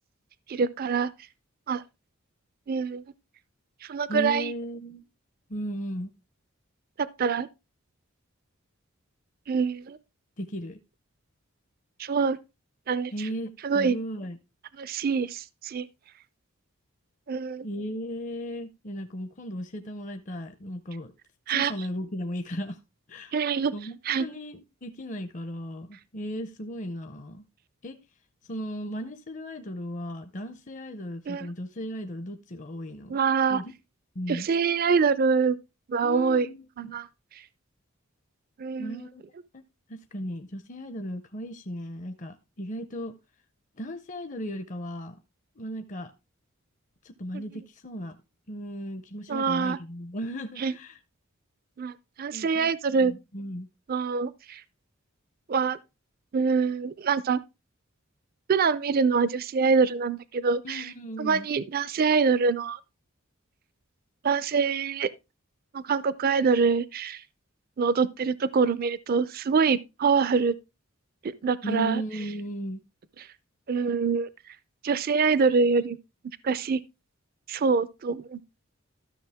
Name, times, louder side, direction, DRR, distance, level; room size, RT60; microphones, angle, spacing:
voice 1, 0.5-1.1 1.7-1.8 2.7-3.0 3.8-4.5 7.0-7.5 9.5-10.0 12.0-12.4 12.9-13.3 13.6-13.9 14.8-15.9 17.3-17.7 21.5-21.7 23.3-23.7 24.1-24.3 31.3-31.5 33.1-33.6 34.3-35.6 35.9-36.5 36.8-37.1 37.3-37.4 38.6-39.0 47.3-47.4 49.3-49.8 50.6-50.7 51.8-53.1 53.9-54.6 55.5-55.8 56.3-57.4 58.5-60.9 61.2-62.8 64.2-65.1 65.7-67.2 67.8-70.5 71.4-72.0 73.7-74.3 74.8-76.0 76.4-76.8 77.5-78.4, right 5 dB, 45° right, 0.4 m, -25 dB
voice 2, 4.1-5.0 5.5-6.1 10.4-10.8 13.1-14.4 17.6-21.1 21.5-22.8 23.1-23.3 23.7-27.4 27.8-28.0 28.4-33.2 33.5-33.7 34.2-34.5 36.0-37.0 38.8-39.2 39.5-39.6 39.9-43.2 43.8-45.2 45.6-46.1 47.0-48.2 48.5-51.0 52.3-53.7 60.6-61.5 71.6-72.8, equal, 35° left, 0.6 m, -36 dB
13.0 x 6.1 x 3.5 m
head